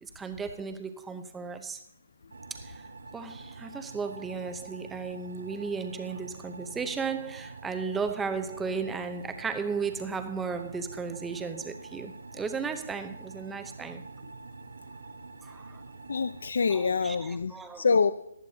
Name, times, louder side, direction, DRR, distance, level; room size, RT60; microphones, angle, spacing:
voice 1, 0.0-1.8 2.5-2.8 3.1-14.0 15.4-15.8 16.7-17.9, right 5 dB, 5° right, 8 dB, 0.8 m, -35 dB
sound 1, 2.3-16.5, right 3 dB, 85° right, 1.2 m, -46 dB
voice 2, 16.1-18.1, left 5 dB, 70° left, 13 dB, 0.6 m, -26 dB
18.5 x 11.5 x 2.8 m, 0.75 s
hypercardioid pair, 165°, 0 cm